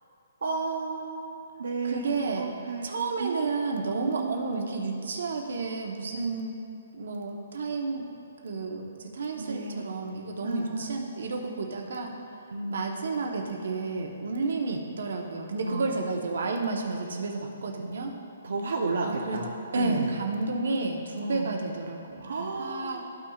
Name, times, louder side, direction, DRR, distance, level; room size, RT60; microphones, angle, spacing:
voice 1, 0.4-3.5 4.0-4.4 6.1-6.4 9.4-9.9 10.4-11.0 12.5-12.8 15.6-15.8 18.4-20.1 21.2-21.6 22.2-23.1, right 4 dB, 90° right, -2 dB, 0.8 m, -33 dB
voice 2, 1.8-2.5 2.8-6.6 6.9-8.1 8.4-12.1 12.7-18.2 19.0-19.4 19.7-23.0, right 3 dB, 70° right, 2 dB, 1.1 m, -31 dB
13.5 x 6.0 x 2.5 m, 2.5 s
hypercardioid pair, 170°, 0 cm